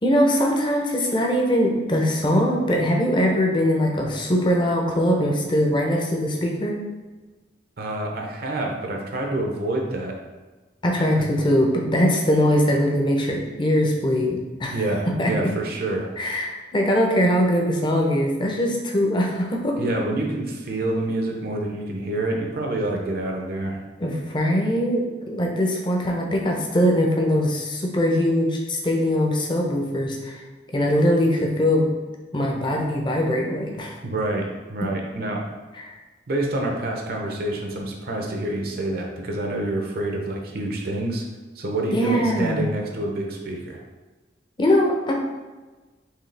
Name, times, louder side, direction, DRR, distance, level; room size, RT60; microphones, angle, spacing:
voice 1, 0.0-6.8 10.8-14.8 15.2-15.3 16.2-19.8 24.0-30.4 30.7-31.9 32.3-33.9 35.8-36.0 41.9-42.6 44.6-45.1, equal, 25° left, 0 dB, 0.7 m, -21 dB
voice 2, 7.8-10.2 14.7-16.1 19.8-23.8 34.0-35.4 36.3-41.2 41.6-43.8, right 1 dB, 55° right, 1 dB, 0.6 m, -27 dB
4.7 x 3.2 x 3.3 m, 1.2 s
head